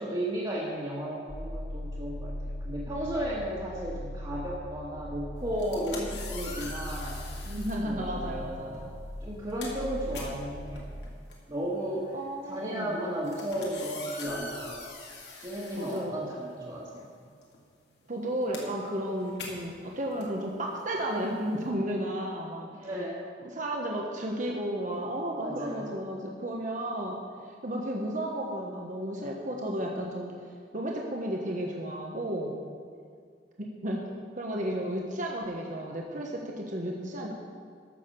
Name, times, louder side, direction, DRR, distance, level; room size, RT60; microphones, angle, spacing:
voice 1, 0.0-7.2 7.8-10.9 11.5-12.1 12.4-14.8 15.4-17.1 22.7-23.2 25.4-25.9, right 1 dB, 25° right, -8 dB, 1.8 m, -34 dB
sound 1, 1.3-10.8, left 1 dB, 50° left, 3.6 m, -39 dB
sound 2, 5.5-7.8 8.7-8.9 9.2-16.8 17.0-21.7, left 3 dB, 70° left, 2.3 m, -44 dB
voice 2, 7.5-8.9 12.1-13.0 15.8-16.1 18.1-22.9 23.4-30.3 30.7-32.6 33.6-34.0 34.3-37.3, right 1 dB, 45° right, -1 dB, 1.2 m, -33 dB
13.0 x 6.5 x 6.6 m, 2.1 s
head